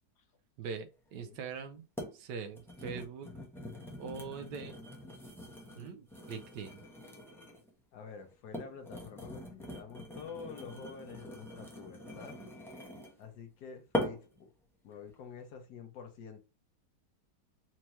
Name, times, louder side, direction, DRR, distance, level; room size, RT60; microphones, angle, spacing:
voice 1, 0.6-1.8 2.1-3.3 4.0-4.8 5.8-6.8, right 6 dB, 80° right, 1.3 m, -42 dB
sound 1, 1.2-1.3 2.0-2.2 2.5-7.7 8.3-13.2 13.9-14.4 14.9-15.1, left 1 dB, ahead, 0.5 m, -42 dB
voice 2, 7.9-12.4 13.2-14.5 14.8-16.4, left 6 dB, 70° left, 1.4 m, -48 dB
4.6 x 2.8 x 3.0 m
omnidirectional pair, 1.9 m